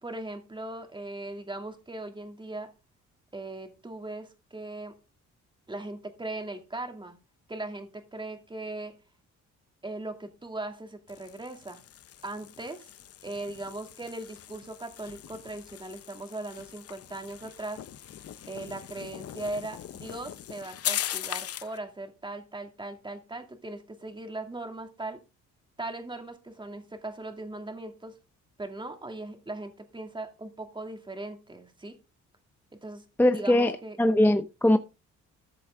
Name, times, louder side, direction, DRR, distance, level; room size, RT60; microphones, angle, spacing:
voice 1, 0.0-2.7 3.3-5.0 5.7-7.2 7.5-9.0 9.8-11.8 12.2-12.9 13.2-17.8 18.5-25.2 25.8-28.2 28.6-32.0 32.8-33.0 33.3-34.0, right 2 dB, 15° right, 2.4 m, -39 dB
sound 1, 11.1-21.8, left 10 dB, 50° left, 0.7 m, -40 dB
voice 2, 33.2-34.8, left 1 dB, 5° left, 0.6 m, -22 dB
14.0 x 7.0 x 3.7 m
cardioid pair, 90°, 30 cm